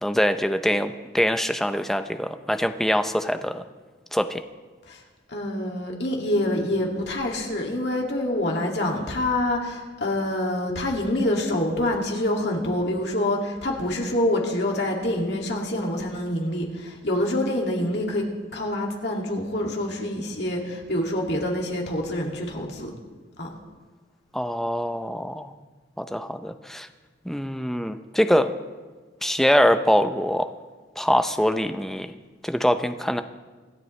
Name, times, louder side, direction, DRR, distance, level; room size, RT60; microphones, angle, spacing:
voice 1, 0.0-3.6 4.1-4.4 24.3-25.5 26.0-26.9 27.3-28.5 29.2-30.5 31.0-32.1 32.4-33.2, equal, ahead, 8 dB, 0.5 m, -23 dB
voice 2, 5.3-18.2 18.5-22.9 23.4-23.5, left 1 dB, 60° left, -1 dB, 2.3 m, -26 dB
25.5 x 10.5 x 3.2 m, 1.4 s
head